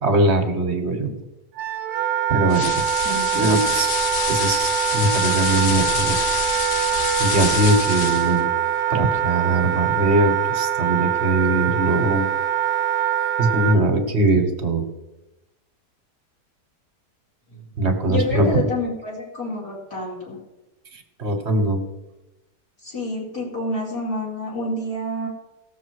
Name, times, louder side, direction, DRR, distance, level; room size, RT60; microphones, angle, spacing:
voice 1, 0.0-1.2 2.3-2.8 3.3-4.0 4.3-6.2 6.6-6.8 7.2-8.5 8.9-12.3 13.4-14.9 17.8-18.6 20.9-21.8, right 2 dB, 45° right, 6 dB, 1.5 m, -21 dB
Wind instrument woodwind instrument, 1.6-13.8, right 10 dB, 75° right, 1.2 m, -23 dB
sound 1, 2.5-8.4, left 6 dB, 75° left, 1.5 m, -27 dB
voice 2, 2.9-3.6 17.5-17.6 18.1-20.4 22.8-25.3, left 1 dB, 60° left, -5 dB, 2.5 m, -28 dB
17.5 x 7.1 x 4.8 m, 1.0 s
omnidirectional pair, 1.7 m